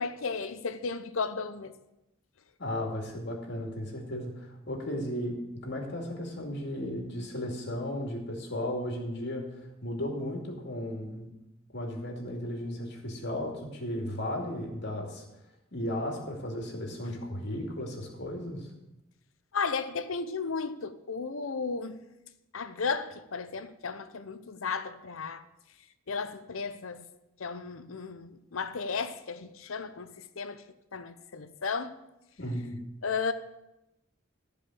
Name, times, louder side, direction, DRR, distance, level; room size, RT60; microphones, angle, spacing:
voice 1, 0.0-1.7 19.5-22.0 22.5-25.4 26.1-27.1 27.4-30.6 30.9-31.9 33.0-33.3, left 5 dB, 75° left, 0.8 m, -34 dB
voice 2, 2.6-11.3 11.7-15.2 15.7-18.7 32.4-32.8, left 1 dB, 55° left, 2.5 m, -35 dB
14.5 x 5.1 x 7.7 m
head